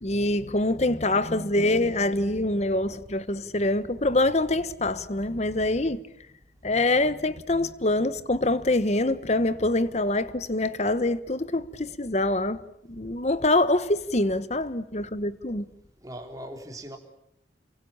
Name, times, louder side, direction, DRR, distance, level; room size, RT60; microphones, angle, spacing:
voice 1, 0.0-6.0 6.6-12.6 12.9-15.7, left 2 dB, 40° left, 1.1 m, -25 dB
voice 2, 1.1-1.7 16.0-17.0, right 1 dB, 20° right, 3.6 m, -41 dB
29.5 x 23.5 x 7.2 m
head